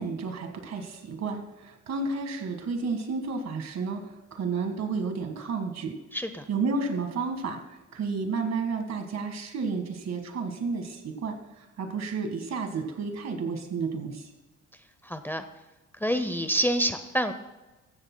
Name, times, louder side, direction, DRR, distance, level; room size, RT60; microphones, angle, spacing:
voice 1, 0.0-6.0 6.5-14.3, right 4 dB, 60° right, 6 dB, 1.9 m, -31 dB
voice 2, 6.1-6.4 15.0-15.4 16.0-17.3, equal, 5° left, 9 dB, 0.7 m, -27 dB
15.5 x 13.5 x 2.3 m, 1.1 s
cardioid pair, 90°, 30 cm